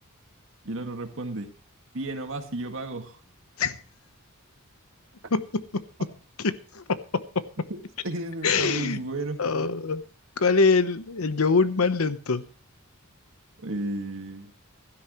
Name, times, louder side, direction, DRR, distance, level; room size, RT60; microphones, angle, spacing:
voice 1, 0.6-1.5 1.9-3.2 7.7-7.8 8.0-9.4 13.6-14.5, right 2 dB, 65° right, 5 dB, 1.9 m, -33 dB
voice 2, 5.3-5.8 6.4-7.4 8.4-9.0 9.4-10.0 10.4-12.4, left 4 dB, 85° left, 13 dB, 1.0 m, -24 dB
16.0 x 12.5 x 3.1 m, 0.37 s
head